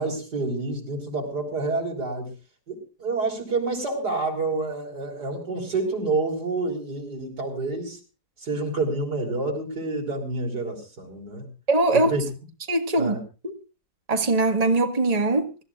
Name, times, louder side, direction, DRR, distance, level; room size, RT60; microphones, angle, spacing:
voice 1, 0.0-2.3 2.7-8.0 8.4-11.5 11.9-12.3 13.0-13.2, right 3 dB, 90° right, 5.4 m, -28 dB
voice 2, 11.7-12.1 12.7-13.2 13.4-13.5 14.1-15.5, right 2 dB, 25° right, 1.8 m, -21 dB
25.0 x 14.0 x 2.5 m
omnidirectional pair, 1.7 m